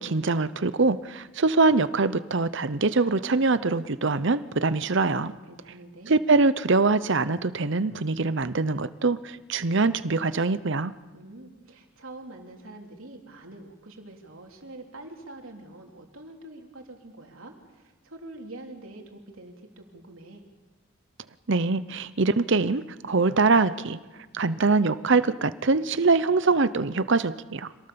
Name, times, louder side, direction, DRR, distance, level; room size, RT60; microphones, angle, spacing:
voice 1, 0.0-5.3 6.1-10.9 21.5-24.0 24.3-27.7, right 3 dB, 60° right, 14 dB, 0.8 m, -23 dB
voice 2, 5.5-6.1 11.1-20.4, right 2 dB, 75° right, 2 dB, 3.3 m, -45 dB
26.5 x 18.5 x 7.0 m, 1.2 s
head